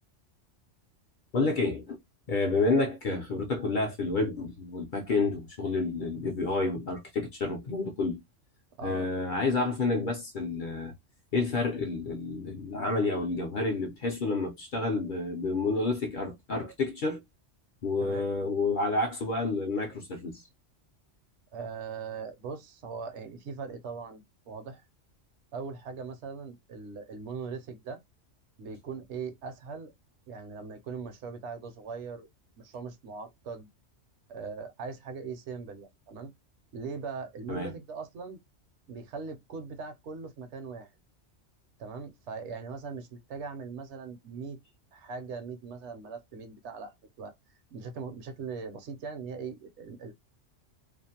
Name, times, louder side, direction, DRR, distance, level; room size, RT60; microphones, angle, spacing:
voice 1, 1.3-2.0 2.3-8.2 8.8-10.9 11.3-17.2 17.8-20.4 37.5-37.7, left 3 dB, 55° left, 0.6 m, -29 dB
voice 2, 8.8-9.1 18.0-18.3 21.5-24.8 25.5-28.0 28.6-29.9 30.3-32.3 32.6-33.7 34.3-36.3 36.7-38.4 38.9-40.9 41.8-44.6 44.9-47.3 47.7-50.1, right 5 dB, 70° right, 0.9 m, -40 dB
2.5 x 2.1 x 2.7 m
omnidirectional pair, 1.2 m